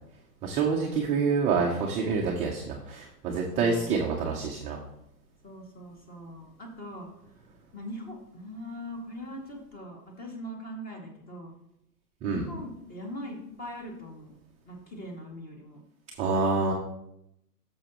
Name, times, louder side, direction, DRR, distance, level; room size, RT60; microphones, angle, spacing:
voice 1, 0.4-4.8 12.2-12.4 16.2-16.7, right 4 dB, 15° right, -1 dB, 0.6 m, -27 dB
voice 2, 3.6-4.2 5.4-7.1 7.7-11.5 12.3-14.3 14.7-15.8, equal, 20° left, 0 dB, 2.2 m, -41 dB
13.5 x 7.1 x 3.0 m, 0.81 s
hypercardioid pair, 135°, 48 cm